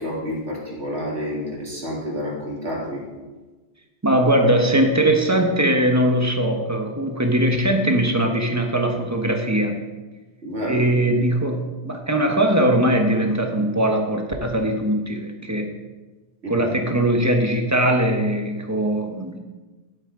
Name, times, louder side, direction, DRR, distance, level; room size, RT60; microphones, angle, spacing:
voice 1, 0.0-3.0 10.4-11.0 16.4-16.7, equal, 75° right, -4 dB, 2.7 m, -29 dB
voice 2, 4.0-9.8 10.7-15.7 16.5-19.4, right 1 dB, 15° right, 3 dB, 1.1 m, -20 dB
12.0 x 8.2 x 3.8 m, 1.2 s
omnidirectional pair, 1.1 m